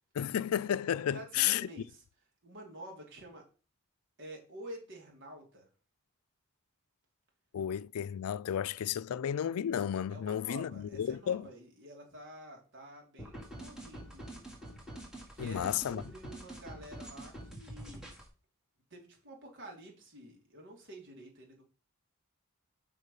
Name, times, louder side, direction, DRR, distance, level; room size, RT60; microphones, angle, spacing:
voice 1, 0.1-1.7 7.5-11.5 15.4-16.0, left 9 dB, 85° left, 0.4 m, -32 dB
voice 2, 1.0-2.0 2.4-3.4 4.2-5.7 10.1-14.5 15.3-18.1 18.9-21.6, right 1 dB, 60° right, 2.8 m, -49 dB
sound 1, 13.2-18.3, right 1 dB, 5° right, 2.1 m, -46 dB
6.6 x 5.6 x 5.3 m
head